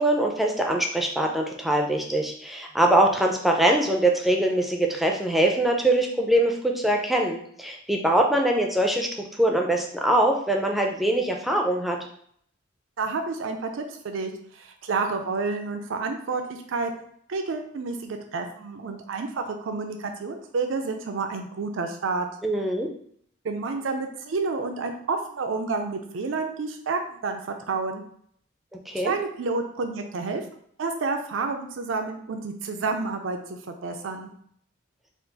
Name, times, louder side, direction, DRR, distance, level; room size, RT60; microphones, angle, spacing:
voice 1, 0.0-9.1 9.4-12.0 22.4-22.9 28.9-29.1, right 1 dB, ahead, 1 dB, 0.4 m, -23 dB
voice 2, 13.0-16.9 17.3-22.3 23.4-28.0 29.0-30.4 30.8-34.3, right 4 dB, 80° right, 5 dB, 0.4 m, -29 dB
4.4 x 2.4 x 3.9 m, 0.65 s
head